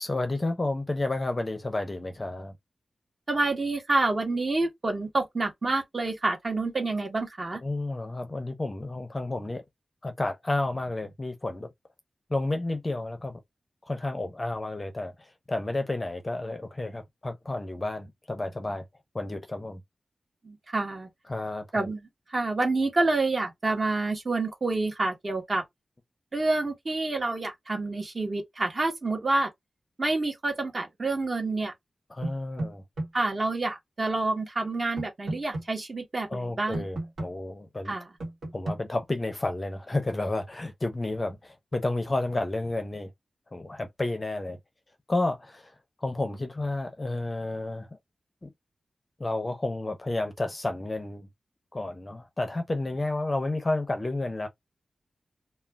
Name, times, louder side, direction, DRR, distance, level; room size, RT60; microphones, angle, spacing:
voice 1, 0.0-2.5 7.6-9.6 10.0-11.7 12.3-13.4 13.9-18.8 19.1-19.8 21.3-21.9 32.1-32.8 36.3-37.9 38.5-43.1 43.5-44.6 45.1-45.7 46.0-47.9 48.4-48.5 49.2-51.3 51.7-54.5, left 2 dB, 25° left, 0.5 m, -31 dB
voice 2, 3.3-7.6 20.4-21.1 21.7-25.6 26.3-29.5 30.0-31.7 33.1-36.8 37.8-38.1, right 2 dB, 35° right, 1.0 m, -28 dB
sound 1, 32.2-33.1 35.0-35.6 36.7-37.3 38.2-38.8, right 2 dB, 85° right, 1.1 m, -32 dB
2.4 x 2.2 x 3.3 m
wide cardioid pair, 120°, 0 cm